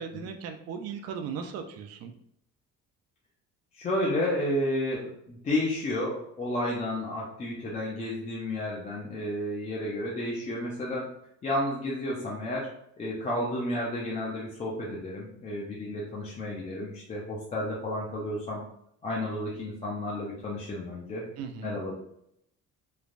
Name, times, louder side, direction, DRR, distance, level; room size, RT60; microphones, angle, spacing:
voice 1, 0.0-2.1 21.4-21.8, right 6 dB, 55° right, 6 dB, 0.4 m, -37 dB
voice 2, 3.7-11.1 11.4-12.7 13.0-18.6 19.0-21.3 21.6-22.1, left 1 dB, 25° left, -5 dB, 0.4 m, -31 dB
3.1 x 2.1 x 2.5 m, 0.73 s
cardioid pair, 165°, 31 cm